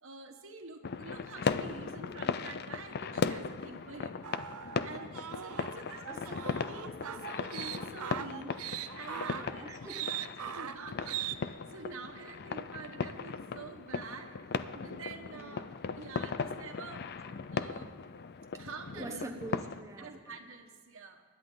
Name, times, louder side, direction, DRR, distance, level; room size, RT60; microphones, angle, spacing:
voice 1, 0.0-4.2 4.8-8.5 8.9-9.7 10.1-14.3 14.7-15.7 16.0-17.9 18.6-19.2 20.0-21.2, right 4 dB, 65° right, 5 dB, 1.4 m, -47 dB
sound 1, 0.8-19.8, left 5 dB, 50° left, 0.5 m, -38 dB
sound 2, 4.2-11.4, right 10 dB, 85° right, 0.6 m, -40 dB
voice 2, 5.6-6.4 9.3-10.1 15.2-15.6 17.7-17.8 19.0-20.4, right 1 dB, 15° right, 1 dB, 0.9 m, -45 dB
24.0 x 11.0 x 3.9 m, 1.5 s
head